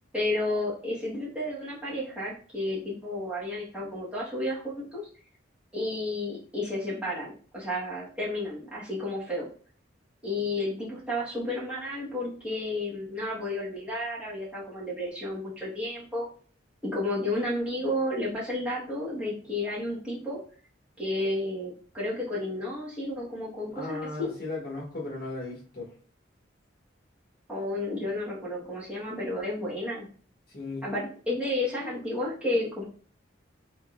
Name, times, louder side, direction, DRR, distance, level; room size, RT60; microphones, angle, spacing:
voice 1, 0.1-5.0 5.7-9.5 10.2-16.3 16.8-20.4 21.0-24.3 27.5-30.1 30.8-32.8, left 1 dB, 5° right, -8 dB, 1.3 m, -32 dB
voice 2, 23.7-25.9 30.5-30.9, left 2 dB, 50° left, -2 dB, 1.2 m, -36 dB
3.7 x 3.5 x 2.5 m, 0.42 s
head